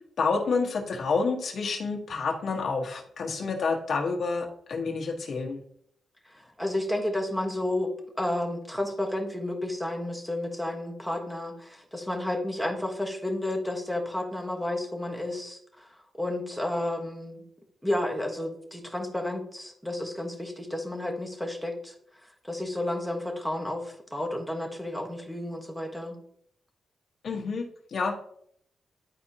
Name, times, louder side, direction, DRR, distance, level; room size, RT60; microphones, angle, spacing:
voice 1, 0.2-5.6 27.2-28.1, left 4 dB, 60° left, 1 dB, 1.3 m, -29 dB
voice 2, 6.3-7.9 8.2-15.9 16.2-17.4 17.8-21.9 22.4-26.2, left 1 dB, ahead, 1 dB, 1.3 m, -31 dB
10.5 x 4.2 x 2.8 m, 0.68 s
wide cardioid pair, 125°, 0 cm